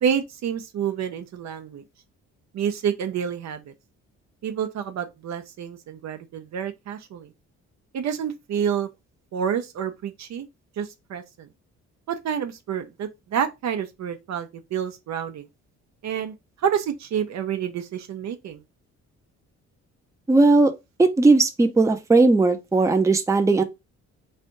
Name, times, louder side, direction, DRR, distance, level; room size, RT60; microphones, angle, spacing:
voice 1, 0.0-1.8 2.5-3.7 4.4-7.3 7.9-8.9 9.3-10.5 10.8-11.5 12.1-15.5 16.0-16.3 16.6-18.6, right 8 dB, 65° right, 0.8 m, -28 dB
voice 2, 20.3-20.7 21.0-23.6, right 3 dB, 10° right, 0.6 m, -17 dB
3.3 x 2.6 x 4.4 m
cardioid pair, 90°, 30 cm